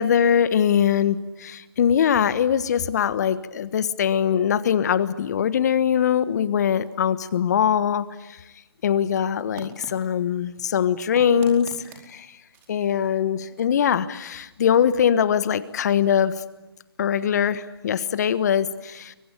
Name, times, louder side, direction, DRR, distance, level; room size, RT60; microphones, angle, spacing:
voice 1, 0.0-8.4 8.8-11.7 12.1-12.3 12.7-16.3 17.0-19.1, left 8 dB, 40° left, 15 dB, 1.3 m, -22 dB
sound 1, 9.5-15.7, right 4 dB, 20° right, 4.5 m, -48 dB
30.0 x 23.0 x 8.4 m, 1.0 s
figure-of-eight pair, 145°, 13 cm